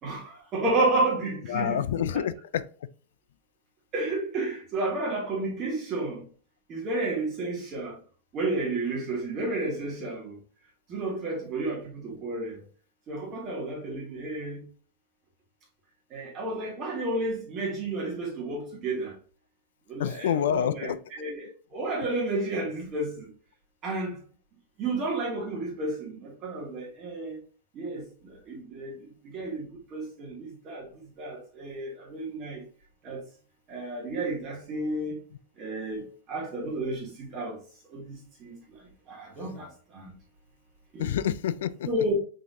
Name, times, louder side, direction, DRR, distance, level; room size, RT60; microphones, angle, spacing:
voice 1, 0.0-1.8 2.1-2.2 3.9-6.2 6.7-8.0 8.3-10.4 10.9-12.6 13.1-14.6 16.1-19.2 19.9-20.9 21.2-23.3 23.8-24.2 24.8-27.4 27.7-32.6 33.0-33.2 33.7-35.2 35.6-37.6 37.9-38.8 39.1-40.1 40.9-41.1 41.8-42.1, right 2 dB, 30° right, 1.8 m, -31 dB
voice 2, 1.5-2.6 20.0-21.0 41.0-41.9, left 9 dB, 85° left, 0.3 m, -27 dB
3.8 x 3.6 x 2.7 m
supercardioid pair, 155°, 0 cm